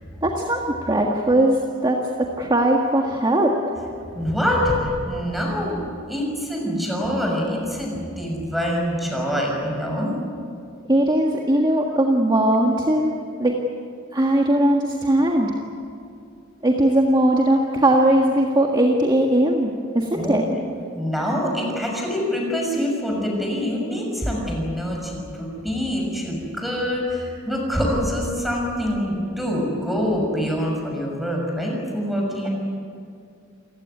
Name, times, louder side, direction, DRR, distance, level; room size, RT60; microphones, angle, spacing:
voice 1, 0.2-3.5 10.9-13.1 13.4-13.6 14.1-15.5 16.6-20.4, right 1 dB, 20° right, 0 dB, 1.7 m, -19 dB
voice 2, 4.1-5.8 6.1-10.1 12.6-12.7 20.1-20.6 20.9-32.5, equal, ahead, 0 dB, 6.5 m, -25 dB
28.5 x 16.0 x 9.5 m, 2.4 s
head